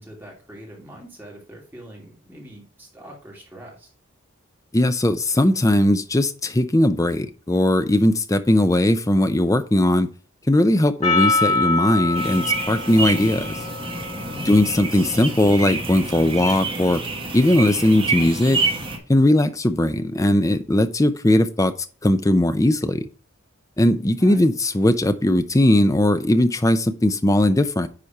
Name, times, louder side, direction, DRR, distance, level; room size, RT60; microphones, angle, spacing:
voice 1, 0.0-3.9 14.3-14.6 24.2-24.5, equal, 10° right, 2.7 m, -43 dB
voice 2, 4.7-10.1 10.5-13.6 14.5-17.0 17.3-18.6 19.1-21.7 22.0-23.1 23.8-27.9, left 1 dB, 15° left, 0.5 m, -19 dB
Percussion, 11.0-15.6, left 3 dB, 30° left, 2.2 m, -26 dB
sound 1, 12.1-19.0, right 3 dB, 25° right, 1.6 m, -28 dB
10.0 x 4.2 x 4.6 m
head